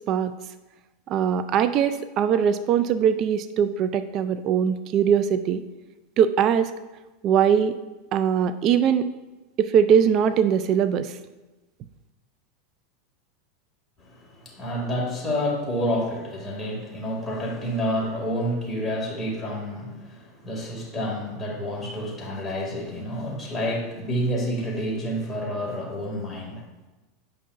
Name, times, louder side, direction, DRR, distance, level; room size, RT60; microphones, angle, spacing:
voice 1, 1.1-5.6 6.2-6.7 7.2-7.8 8.1-9.1 9.6-11.2, right 8 dB, 45° right, 12 dB, 0.3 m, -21 dB
voice 2, 14.0-26.6, equal, 10° left, -4 dB, 2.3 m, -29 dB
8.6 x 5.4 x 2.5 m, 1.1 s
hypercardioid pair, 110°, 0 cm